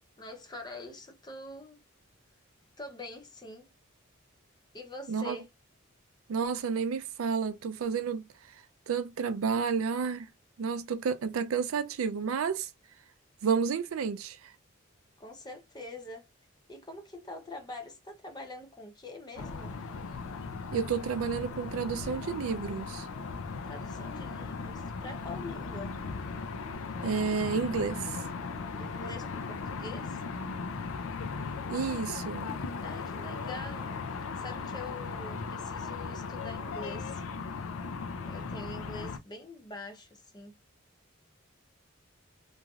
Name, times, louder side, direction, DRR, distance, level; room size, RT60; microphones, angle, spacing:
voice 1, 0.2-1.8 2.8-3.7 4.7-5.5 15.2-16.3 16.7-19.8 23.5-26.0 28.7-30.2 32.8-37.2 38.2-40.5, left 2 dB, 20° left, 0.5 m, -45 dB
voice 2, 6.3-8.6 8.9-10.3 10.6-12.7 13.4-14.5 20.7-23.1 27.0-28.2 31.7-32.6, right 6 dB, 85° right, 0.4 m, -31 dB
sound 1, 19.4-39.2, left 4 dB, 80° left, 0.4 m, -37 dB
3.0 x 2.5 x 2.3 m
head